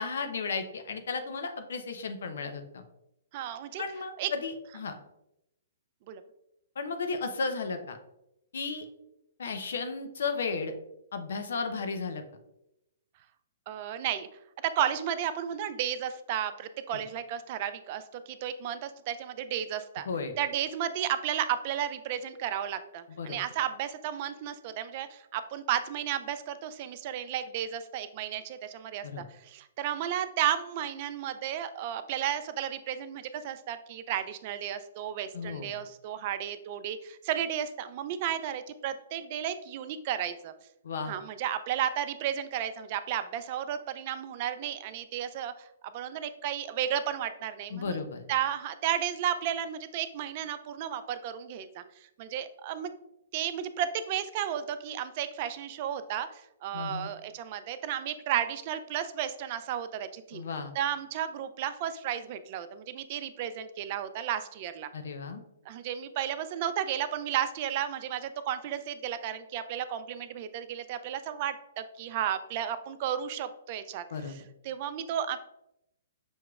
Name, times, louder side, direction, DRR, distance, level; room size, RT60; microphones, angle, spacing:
voice 1, 0.0-2.8 3.8-5.0 6.8-8.0 8.5-8.9 9.4-10.7 11.1-12.2 16.9-17.0 20.1-20.3 23.2-23.4 29.0-29.2 35.3-35.7 40.8-41.1 47.7-48.3 56.7-57.1 60.3-60.7 64.9-65.4 74.1-74.4, left 4 dB, 70° left, 8 dB, 0.5 m, -34 dB
voice 2, 3.3-3.8 4.2-4.3 6.1-6.2 13.7-14.3 14.6-20.1 20.4-29.1 29.3-40.5 41.1-45.7 45.9-48.0 48.3-51.8 52.2-52.9 53.3-60.4 60.7-64.9 65.7-75.4, right 10 dB, 45° right, 11 dB, 0.3 m, -33 dB
6.1 x 2.9 x 2.3 m, 0.84 s
hypercardioid pair, 130°, 0 cm